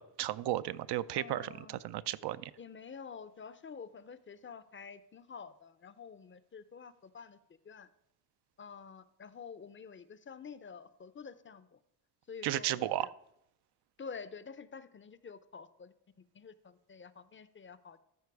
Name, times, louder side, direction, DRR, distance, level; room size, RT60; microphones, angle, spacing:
voice 1, 0.0-2.5 12.4-13.1, right 13 dB, 65° right, 15 dB, 0.5 m, -34 dB
voice 2, 1.1-1.8 2.6-7.4 7.6-7.9 8.6-11.8 12.3-13.1 14.0-15.9 16.3-18.0, left 6 dB, 30° left, 15 dB, 0.5 m, -48 dB
13.0 x 4.5 x 4.7 m, 0.80 s
cardioid pair, 75°, 43 cm